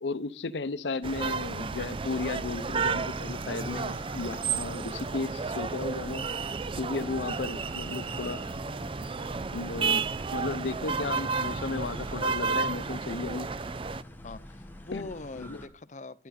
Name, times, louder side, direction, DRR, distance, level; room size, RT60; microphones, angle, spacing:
voice 1, 0.0-6.3 6.8-8.4 9.5-13.5 14.9-15.1 15.4-15.6, left 3 dB, 90° left, 0.7 m, -34 dB
sound 1, 1.0-14.0, right 5 dB, 30° right, 0.4 m, -32 dB
sound 2, 1.5-15.7, left 1 dB, 10° left, 1.4 m, -47 dB
voice 2, 14.2-16.3, left 3 dB, 45° left, 0.7 m, -42 dB
11.5 x 10.0 x 4.2 m
head